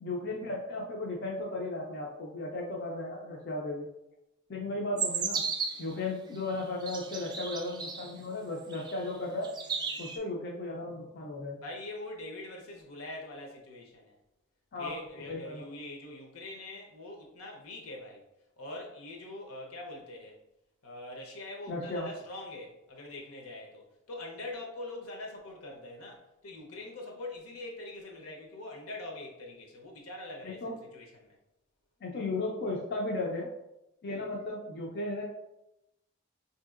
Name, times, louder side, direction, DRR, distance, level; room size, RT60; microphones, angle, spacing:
voice 1, 0.0-3.9 4.5-5.5 5.8-9.5 10.0-11.6 14.7-14.9 15.3-15.6 21.7-22.1 30.4-30.7 32.0-33.5 34.0-35.2, left 2 dB, 50° left, -2 dB, 0.5 m, -35 dB
sound 1, 5.0-5.9 6.6-8.1 8.7-9.2 9.4-10.2, right 6 dB, 20° right, 0.3 m, -34 dB
voice 2, 11.6-14.2 14.8-18.2 18.6-20.4 20.8-30.6 30.9-31.4, left 2 dB, 80° left, 0 dB, 0.8 m, -43 dB
4.7 x 2.7 x 2.4 m, 0.89 s
head